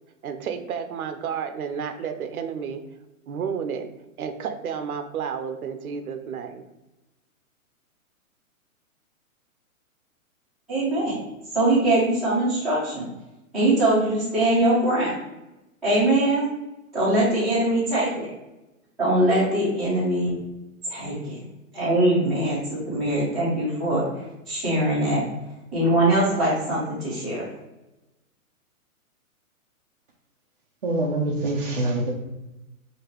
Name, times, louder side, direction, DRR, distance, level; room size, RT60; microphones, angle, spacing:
voice 1, 0.2-2.8 3.3-3.9 4.2-6.6, right 7 dB, 80° right, 0.7 m, -31 dB
voice 2, 10.7-11.1 11.5-13.0 13.5-15.2 15.8-16.5 16.9-18.3 19.0-20.3 20.9-21.4 21.7-25.2 25.7-27.4, right 1 dB, ahead, 0.7 m, -22 dB
voice 3, 30.8-32.1, right 2 dB, 40° right, 0.5 m, -25 dB
4.9 x 2.8 x 3.0 m
hypercardioid pair, 170°, 42 cm